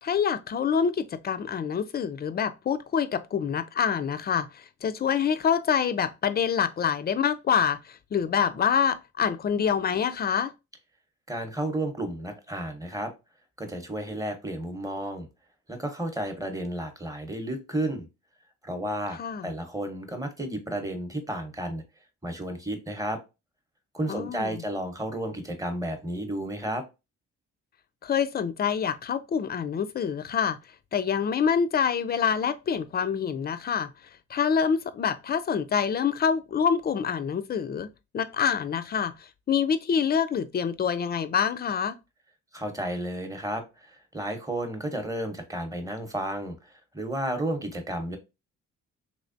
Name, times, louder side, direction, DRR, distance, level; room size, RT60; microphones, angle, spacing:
voice 1, 0.0-10.5 19.2-19.5 24.1-24.6 28.0-30.6 30.9-33.9 34.3-39.1 39.5-42.0, left 7 dB, 35° left, 0.4 m, -26 dB
voice 2, 11.3-13.1 13.6-15.3 15.7-18.1 18.6-21.8 22.2-23.2 23.9-26.8 42.5-48.2, right 1 dB, 10° right, 0.8 m, -32 dB
3.2 x 3.1 x 2.6 m
cardioid pair, 90°, 30 cm